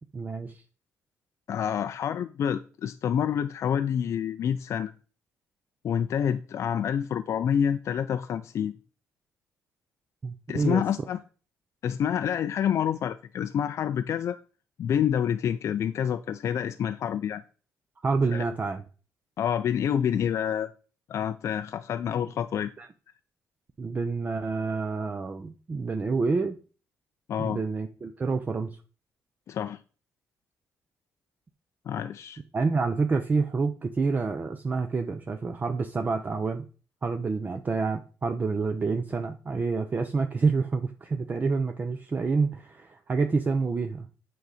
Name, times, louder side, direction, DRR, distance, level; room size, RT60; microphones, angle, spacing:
voice 1, 0.1-0.5 10.2-10.8 18.0-18.8 22.8-22.9 23.8-26.6 27.4-28.8 32.5-36.7 37.0-44.1, right 4 dB, 30° right, 0.6 m, -28 dB
voice 2, 1.5-4.9 5.8-8.8 10.5-11.2 11.8-14.4 14.8-17.4 18.3-18.4 19.4-20.7 21.1-22.7 27.3-27.6 29.5-29.8 31.9-32.4, left 8 dB, 60° left, 0.4 m, -28 dB
7.8 x 3.9 x 4.9 m
cardioid pair, 95°, 6 cm